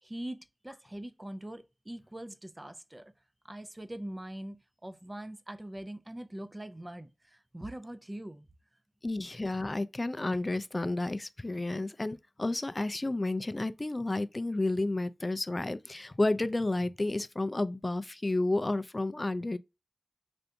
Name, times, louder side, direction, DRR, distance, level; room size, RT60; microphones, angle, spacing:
voice 1, 0.0-3.1 3.4-8.5, right 1 dB, 25° right, 0.5 m, -42 dB
voice 2, 9.0-19.6, left 2 dB, 35° left, 0.3 m, -31 dB
3.4 x 2.5 x 2.6 m
cardioid pair, 50°, 0 cm